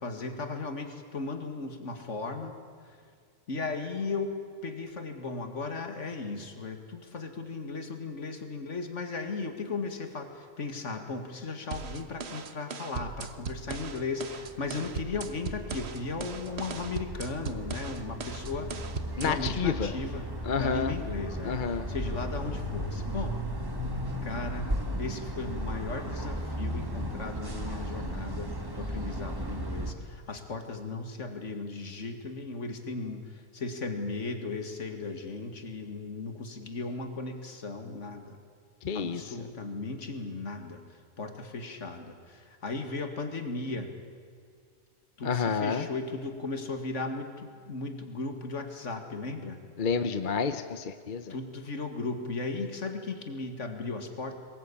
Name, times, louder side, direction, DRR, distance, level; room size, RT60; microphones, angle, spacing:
voice 1, 0.0-2.5 2.8-3.0 3.5-4.4 4.6-18.9 19.2-20.3 20.6-21.6 21.9-23.4 24.2-24.7 25.0-28.5 28.8-38.4 38.9-40.8 41.2-43.9 45.2-49.6 51.3-54.3, left 3 dB, 65° left, 6 dB, 2.3 m, -36 dB
sound 1, 11.7-19.7, right 5 dB, 55° right, 1.4 m, -39 dB
sound 2, 14.0-29.9, equal, 15° right, 1.7 m, -36 dB
voice 2, 19.2-20.0 20.4-20.9 21.4-21.9 38.8-39.5 45.2-45.9 49.8-51.3, left 6 dB, 40° left, 10 dB, 0.9 m, -30 dB
23.0 x 20.5 x 8.6 m, 2.1 s
omnidirectional pair, 1.4 m